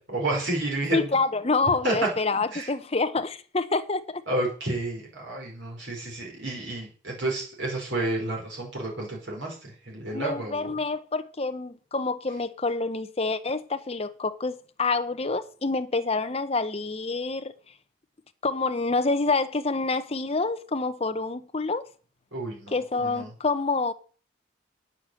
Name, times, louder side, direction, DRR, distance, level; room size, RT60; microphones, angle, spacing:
voice 1, 0.0-1.1 1.8-2.1 2.5-2.7 4.3-10.7 22.3-23.3, right 2 dB, 60° right, 5.3 m, -30 dB
voice 2, 0.9-4.2 10.1-17.5 18.4-21.8 22.7-23.9, left 3 dB, 30° left, 0.7 m, -27 dB
9.0 x 6.7 x 7.6 m
head